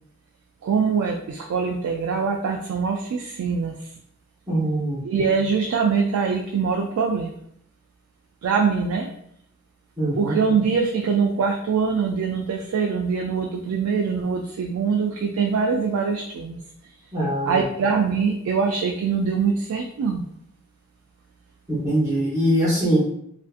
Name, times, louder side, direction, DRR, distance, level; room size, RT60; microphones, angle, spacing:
voice 1, 0.6-3.7 5.0-7.3 8.4-9.1 10.2-16.6 17.5-20.3, right 5 dB, 70° right, 2 dB, 0.3 m, -23 dB
voice 2, 4.5-5.0 10.0-10.4 17.1-17.7 21.7-23.0, right 1 dB, 15° right, -9 dB, 0.9 m, -22 dB
2.5 x 2.4 x 2.4 m, 0.69 s
head